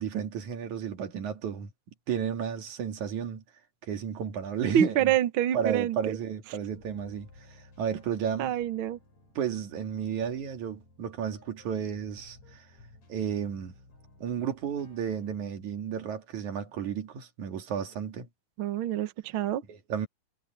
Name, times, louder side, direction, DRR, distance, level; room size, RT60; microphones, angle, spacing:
voice 1, 0.0-1.7 2.1-3.4 3.8-5.1 5.5-8.5 9.3-12.7 13.1-13.7 14.2-18.3 19.7-20.1, right 7 dB, 60° right, 3.4 m, -33 dB
voice 2, 4.7-6.2 8.4-9.0 18.6-19.6, right 10 dB, 85° right, 1.1 m, -26 dB
sound 1, 6.7-15.4, left 2 dB, 50° left, 8.7 m, -57 dB
omnidirectional pair, 4.0 m